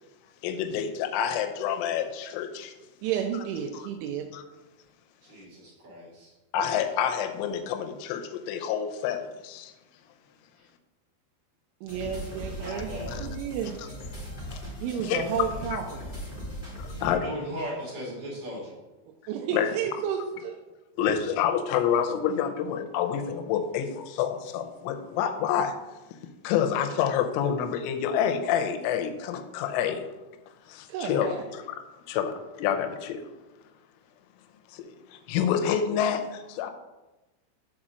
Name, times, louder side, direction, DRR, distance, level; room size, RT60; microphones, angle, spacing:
voice 1, 0.4-2.7 6.5-8.2 8.5-9.2 15.0-15.2 15.7-15.8 17.0-17.2 19.5-19.7 21.0-23.9 24.2-25.7 26.5-30.0 31.0-31.3 32.1-32.3 32.6-33.2 35.3-36.2 36.6-36.7, left 8 dB, 80° left, 7 dB, 3.1 m, -27 dB
voice 2, 3.0-4.3 11.8-12.9 13.2-13.7 14.8-16.0 19.3-20.6 30.9-31.4, right 7 dB, 85° right, 2 dB, 2.9 m, -31 dB
voice 3, 5.2-6.3 12.5-13.2 17.0-18.7, equal, 45° right, -5 dB, 2.7 m, -37 dB
sound 1, 11.9-17.1, equal, 60° left, 0.5 m, -38 dB
7.3 x 4.7 x 6.4 m, 1.1 s
omnidirectional pair, 5.9 m